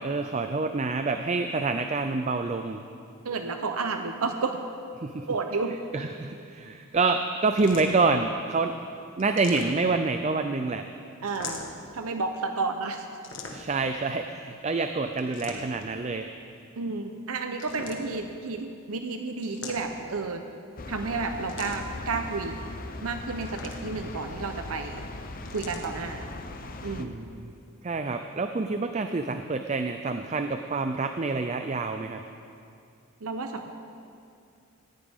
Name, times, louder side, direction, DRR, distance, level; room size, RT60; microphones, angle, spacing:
voice 1, 0.0-2.8 5.0-5.3 5.9-8.7 9.2-10.9 13.5-16.3 27.0-27.5 27.8-32.2, right 3 dB, 30° right, 7 dB, 0.4 m, -27 dB
voice 2, 3.2-4.6 5.3-5.8 11.2-11.6 11.9-13.1 16.8-20.4 20.9-22.6 23.0-25.0 25.5-26.2 26.8-27.1 33.2-33.7, right 4 dB, 85° right, 6 dB, 0.8 m, -31 dB
sound 1, 7.6-8.2 9.2-10.1 11.3-11.9 13.2-13.9 15.2-15.9 17.5-18.3 19.4-20.2 21.5-22.0 23.4-24.1 25.4-25.9, left 3 dB, 55° left, 1.5 m, -41 dB
sound 2, 20.8-27.0, left 2 dB, 40° left, 0.7 m, -39 dB
18.5 x 15.0 x 3.6 m, 2.5 s
head